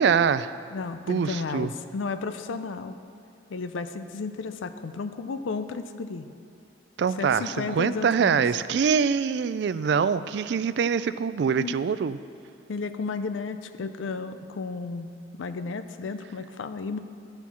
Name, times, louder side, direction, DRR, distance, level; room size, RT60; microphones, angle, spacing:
voice 1, 0.0-0.6 1.1-1.7 7.0-12.2, right 6 dB, 60° right, 14 dB, 0.3 m, -24 dB
voice 2, 0.7-3.0 3.5-6.3 7.2-8.4 11.6-11.8 12.7-15.1 15.3-17.0, left 4 dB, 90° left, 10 dB, 0.5 m, -33 dB
13.0 x 4.5 x 7.0 m, 2.4 s
head